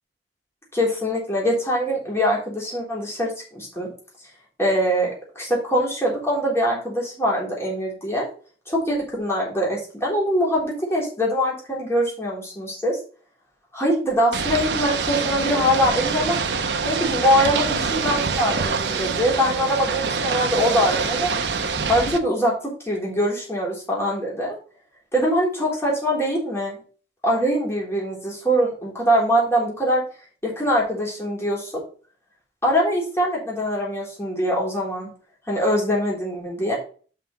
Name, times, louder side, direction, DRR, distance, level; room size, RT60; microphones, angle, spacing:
voice 1, 0.7-3.9 4.6-8.3 8.7-13.0 13.7-16.4 16.8-21.3 21.9-22.5 22.8-24.6 25.1-26.8 27.2-30.0 30.4-31.8 32.6-35.1 35.5-36.8, equal, 15° left, -4 dB, 3.7 m, -23 dB
Ocean / Boat Water vehicle, 14.3-22.2, right 5 dB, 75° right, 0.9 m, -25 dB
5.9 x 5.8 x 5.6 m, 0.40 s
head